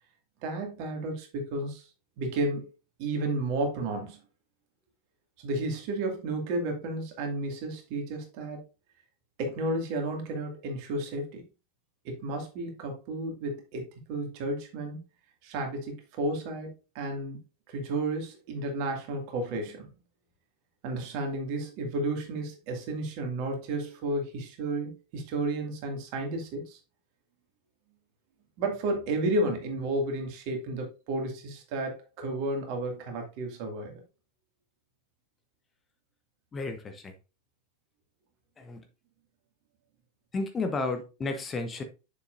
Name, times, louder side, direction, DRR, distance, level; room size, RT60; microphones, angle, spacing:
voice 1, 0.4-1.9 2.2-2.7 3.0-4.2 5.4-8.6 9.4-11.4 12.0-13.8 14.1-15.0 15.4-16.7 16.9-17.4 17.7-19.9 20.8-26.8 28.6-34.0, right 2 dB, 45° right, 2.2 m, -32 dB
voice 2, 36.5-37.1 38.6-38.8 40.3-41.8, left 3 dB, 20° left, 0.9 m, -32 dB
7.1 x 6.8 x 2.6 m
figure-of-eight pair, 90°, 0 cm